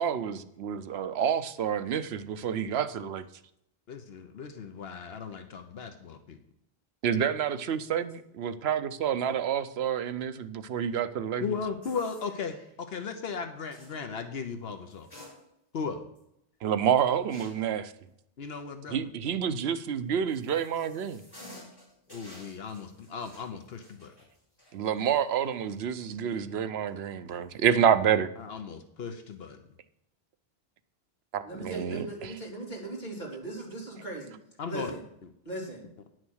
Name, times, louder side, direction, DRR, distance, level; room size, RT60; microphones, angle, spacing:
voice 1, 0.0-3.3 7.0-11.6 16.6-17.9 18.9-21.2 24.7-28.3 31.3-32.3, right 8 dB, 85° right, 12 dB, 0.9 m, -28 dB
voice 2, 3.9-6.4 11.4-15.1 15.7-16.0 18.4-19.1 22.1-24.1 28.4-29.6 34.6-34.9, left 5 dB, 75° left, 7 dB, 1.1 m, -36 dB
sound 1, 11.8-12.7 13.7-14.0 14.9-15.8 16.2-16.3 17.3-17.7 19.8-25.9 26.3-26.4 27.3-27.6, left 1 dB, 20° left, 3.6 m, -52 dB
voice 3, 31.4-34.3 34.7-35.0 35.4-35.9, right 2 dB, 45° left, -3 dB, 3.3 m, -38 dB
9.9 x 6.3 x 6.3 m, 0.78 s
omnidirectional pair, 1.0 m